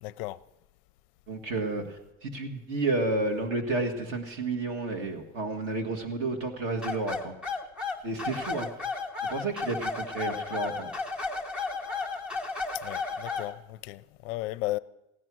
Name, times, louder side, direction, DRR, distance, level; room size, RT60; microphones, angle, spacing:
voice 1, 0.0-0.4 12.7-14.8, left 17 dB, 60° left, 0.5 m, -35 dB
voice 2, 1.3-7.3 8.0-8.7 9.3-10.9, right 2 dB, 40° right, 1.8 m, -31 dB
sound 1, 6.8-13.5, left 4 dB, 5° right, 0.5 m, -33 dB
16.0 x 10.0 x 6.2 m
cardioid pair, 180°, 33 cm